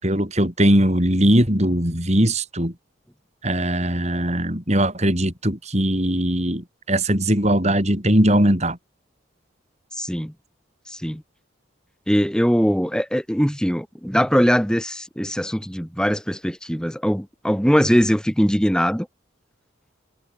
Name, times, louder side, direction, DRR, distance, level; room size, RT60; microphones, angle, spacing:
voice 1, 0.0-2.7 3.4-8.8, right 1 dB, 35° right, 6.5 m, -20 dB
voice 2, 10.0-10.3 10.9-11.2 12.1-19.1, equal, 5° left, 4.7 m, -21 dB
head